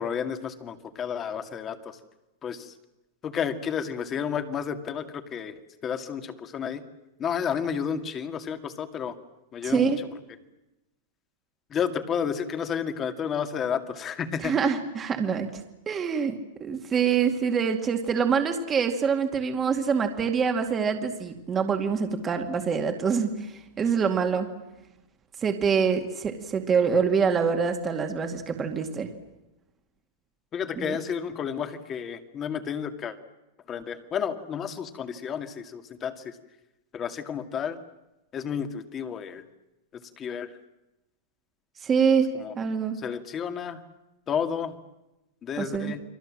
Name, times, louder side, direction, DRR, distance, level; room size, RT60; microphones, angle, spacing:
voice 1, 0.0-2.0 2.4-2.7 3.2-6.8 7.2-9.1 9.5-10.1 11.7-14.5 30.5-33.2 33.7-36.4 36.9-37.8 38.3-39.4 39.9-40.5 42.3-42.5 43.0-43.8 44.3-44.8 45.4-46.0, left 7 dB, 25° left, 8 dB, 2.2 m, -31 dB
voice 2, 9.6-10.0 14.4-15.5 15.9-23.5 23.8-24.5 25.4-29.1 30.8-31.0 41.8-43.0 45.6-46.0, right 6 dB, 20° right, 5 dB, 2.2 m, -25 dB
30.0 x 23.0 x 7.6 m, 0.97 s
supercardioid pair, 150°, 0 cm